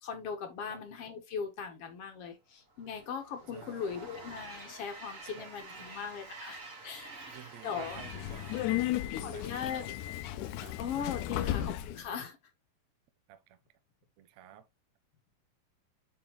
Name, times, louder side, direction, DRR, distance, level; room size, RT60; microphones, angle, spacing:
voice 1, 0.0-7.1 7.6-8.0 9.2-9.9 10.8-12.4, left 7 dB, 60° left, 1.8 m, -39 dB
Train, 2.7-10.2, right 3 dB, 35° right, 1.3 m, -49 dB
voice 2, 3.5-4.1 5.2-5.5 5.8-6.4 7.3-10.1 10.6-10.8 11.3-11.6 13.3-13.6 14.2-14.6, right 11 dB, 70° right, 1.7 m, -53 dB
Subway metro underground, 7.8-12.1, left 14 dB, 80° left, 2.0 m, -34 dB
8.7 x 4.5 x 3.0 m
omnidirectional pair, 3.9 m